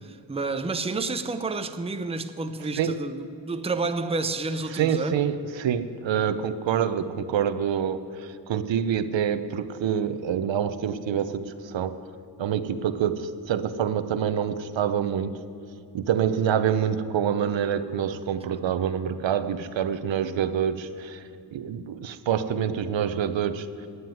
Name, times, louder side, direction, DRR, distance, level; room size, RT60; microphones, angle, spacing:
voice 1, 0.0-5.2, right 3 dB, 15° right, 0.7 m, -30 dB
voice 2, 4.7-12.0 12.4-15.3 15.9-21.2 21.5-23.7, right 8 dB, 70° right, 0.8 m, -26 dB
9.5 x 9.5 x 9.1 m
cardioid pair, 70°, 46 cm